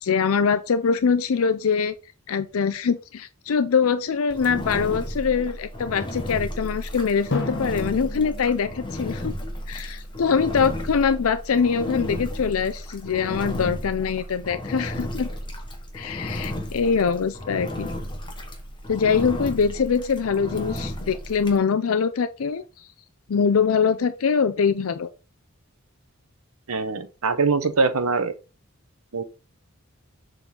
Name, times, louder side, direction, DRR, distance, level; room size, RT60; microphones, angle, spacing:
voice 1, 0.0-1.9 2.3-9.3 9.7-15.3 15.9-17.9 18.9-22.9 23.3-25.1, left 6 dB, 75° left, 0.5 m, -23 dB
Engine, 4.3-21.6, equal, 20° left, 1.2 m, -33 dB
Drum, 7.3-10.2, left 2 dB, 55° left, 1.3 m, -34 dB
voice 2, 26.7-28.3 29.1-29.2, right 4 dB, 80° right, 0.9 m, -23 dB
7.2 x 3.8 x 3.8 m
head